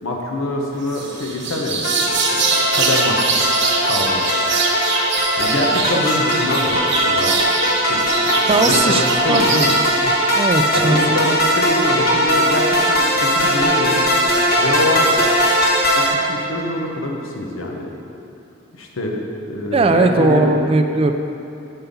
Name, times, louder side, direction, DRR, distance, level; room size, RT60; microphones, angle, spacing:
voice 1, 0.0-3.5 3.8-4.3 5.4-7.4 7.7-9.7 10.7-14.0 14.6-15.3 16.0-17.9 18.7-20.5, left 1 dB, 85° left, 0 dB, 1.1 m, -25 dB
sound 1, 0.9-9.8, right 4 dB, 60° right, 1.0 m, -23 dB
sound 2, 1.8-16.1, equal, 50° left, 1.3 m, -19 dB
voice 2, 8.4-9.7 10.3-11.0 19.7-21.1, right 3 dB, 30° right, 7 dB, 0.3 m, -18 dB
5.6 x 5.6 x 6.8 m, 2.9 s
head